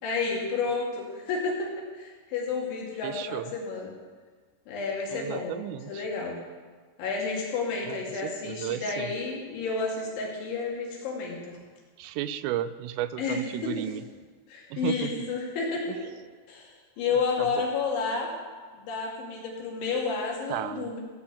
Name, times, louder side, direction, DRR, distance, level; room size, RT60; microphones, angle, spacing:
voice 1, 0.0-1.7 1.9-3.9 4.7-5.6 5.9-6.4 7.0-11.6 13.2-13.9 14.5-16.1 16.5-18.3 18.7-21.0, left 4 dB, 70° left, -2 dB, 4.6 m, -31 dB
voice 2, 3.0-3.5 5.1-6.1 7.8-8.0 8.2-9.1 12.0-14.0 14.7-15.2 15.9-16.0 17.4-17.7 20.5-20.9, right 12 dB, 85° right, 13 dB, 3.1 m, -34 dB
16.5 x 6.2 x 8.4 m, 1.5 s
omnidirectional pair, 5.7 m